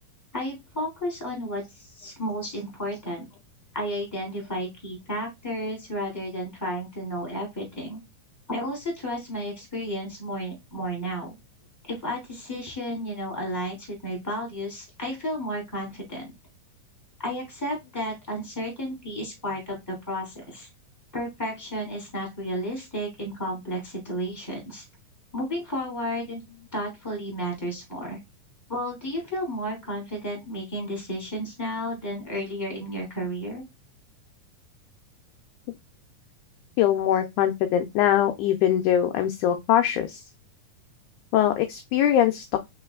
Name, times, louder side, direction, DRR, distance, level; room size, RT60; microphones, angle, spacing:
voice 1, 0.3-3.3 3.7-8.0 8.5-11.3 11.8-16.3 17.2-20.7 21.1-24.8 25.3-26.4 26.7-28.2 28.7-33.6, equal, 5° left, 2.3 m, -32 dB
voice 2, 36.8-40.2 41.3-42.6, left 11 dB, 80° left, 1.8 m, -22 dB
4.9 x 3.9 x 2.3 m
omnidirectional pair, 4.0 m